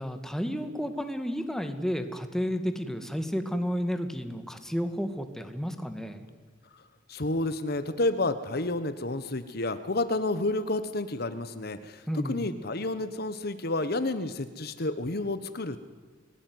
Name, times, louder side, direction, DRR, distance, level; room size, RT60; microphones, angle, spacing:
voice 1, 0.0-6.3 12.1-12.5, equal, 5° left, 7 dB, 1.8 m, -32 dB
voice 2, 7.1-15.8, left 2 dB, 55° left, 11 dB, 1.3 m, -30 dB
29.0 x 18.0 x 9.5 m, 1.5 s
head